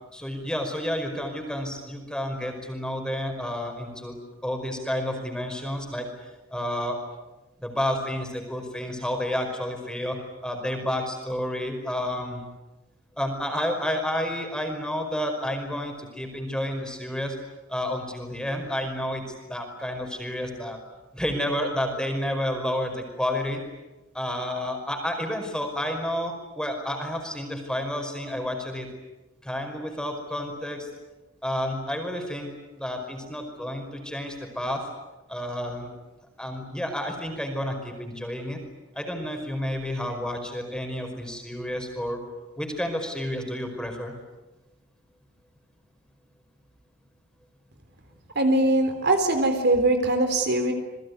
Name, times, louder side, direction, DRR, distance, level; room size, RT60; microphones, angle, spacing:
voice 1, 0.1-4.2 4.4-6.1 6.5-7.0 7.6-12.4 13.2-17.4 17.7-20.8 21.1-23.6 24.1-28.9 29.4-30.9 31.4-34.9 35.3-35.9 36.4-38.6 38.9-42.2 42.6-44.1, left 1 dB, 5° left, 4 dB, 5.2 m, -30 dB
voice 2, 48.4-50.7, right 2 dB, 50° right, 6 dB, 3.8 m, -22 dB
29.0 x 21.5 x 9.6 m, 1.1 s
head